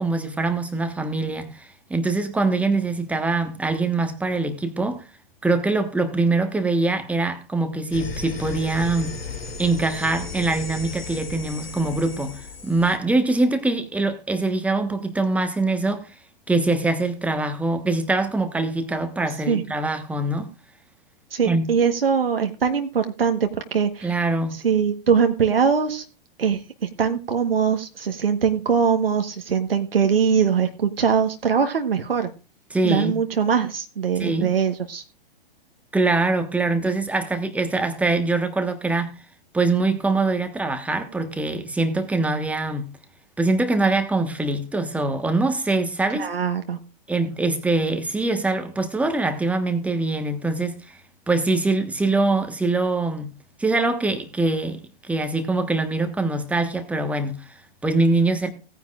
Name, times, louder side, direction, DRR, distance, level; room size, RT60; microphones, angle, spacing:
voice 1, 0.0-5.0 5.4-9.1 9.6-16.1 16.5-20.5 21.4-21.7 24.0-24.5 32.7-33.2 34.2-34.5 35.9-39.1 39.5-42.9 43.4-46.3 47.1-51.0 51.3-53.3 53.6-58.5, right 2 dB, 5° right, 1.3 m, -23 dB
sound 1, 7.9-13.0, left 4 dB, 75° left, 2.3 m, -34 dB
voice 2, 21.3-24.1 24.6-26.0 26.4-26.6 27.0-32.3 32.8-35.0 46.2-46.8, right 6 dB, 70° right, 1.3 m, -22 dB
17.5 x 9.4 x 2.4 m
figure-of-eight pair, 110°, 30 cm